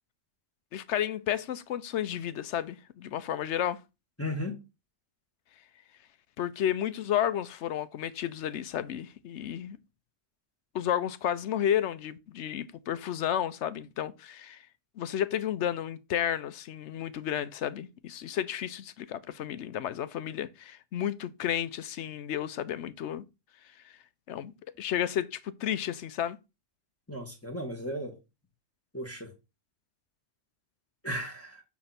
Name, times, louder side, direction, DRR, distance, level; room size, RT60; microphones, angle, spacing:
voice 1, 0.7-3.8 6.4-9.8 10.7-14.6 15.0-23.2 24.3-24.5 24.8-26.4, left 10 dB, 85° left, 1.0 m, -32 dB
voice 2, 4.2-4.5 27.1-28.2 28.9-29.3 31.0-31.6, equal, 10° left, 1.5 m, -35 dB
8.3 x 3.2 x 5.8 m
omnidirectional pair, 1.2 m